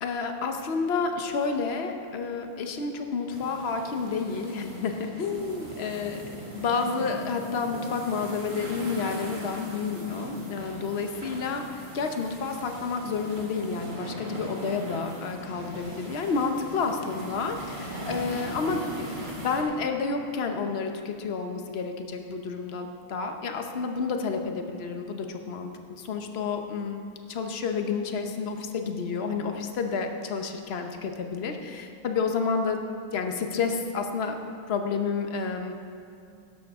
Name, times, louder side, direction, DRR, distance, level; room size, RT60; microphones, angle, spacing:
voice 1, 0.0-6.2 6.5-32.8 33.1-34.4 34.7-35.7, left 5 dB, 65° left, 5 dB, 0.6 m, -30 dB
sound 1, 3.3-19.6, right 1 dB, 25° right, 1.8 m, -39 dB
16.5 x 12.5 x 3.6 m, 2.4 s
omnidirectional pair, 2.3 m